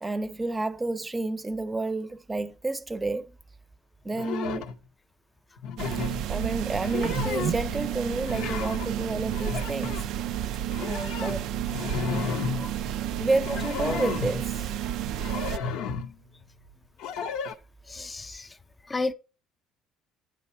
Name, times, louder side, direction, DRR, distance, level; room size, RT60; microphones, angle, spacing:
voice 1, 0.0-3.4 4.0-4.7 6.3-10.0 10.8-11.5 13.2-14.8, right 2 dB, 20° right, 0.6 m, -30 dB
sound 1, 4.1-4.8 5.6-6.2 6.7-7.7 8.3-8.9 9.3-10.1 10.7-12.7 13.3-14.5 15.2-16.1 17.0-17.5, left 6 dB, 75° left, 0.5 m, -33 dB
sound 2, 5.8-15.6, right 11 dB, 70° right, 0.3 m, -31 dB
sound 3, 7.0-10.6 10.9-12.7 13.0-14.8 15.2-17.1, right 5 dB, 90° right, 0.9 m, -42 dB
voice 2, 12.5-13.2 15.3-15.4 17.9-18.6 18.8-19.1, left 3 dB, 25° left, 0.5 m, -34 dB
8.9 x 3.1 x 5.4 m
supercardioid pair, 75°, 0 cm